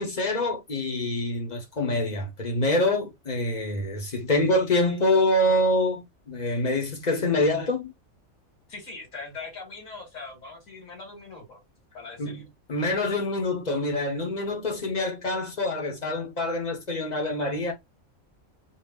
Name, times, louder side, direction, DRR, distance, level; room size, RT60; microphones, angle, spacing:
voice 1, 0.0-7.9 12.2-12.4 12.7-17.7, left 1 dB, 35° left, 1.1 m, -26 dB
voice 2, 8.7-11.6 11.9-12.4, left 3 dB, 80° left, 2.7 m, -41 dB
4.1 x 2.4 x 3.6 m
omnidirectional pair, 1.4 m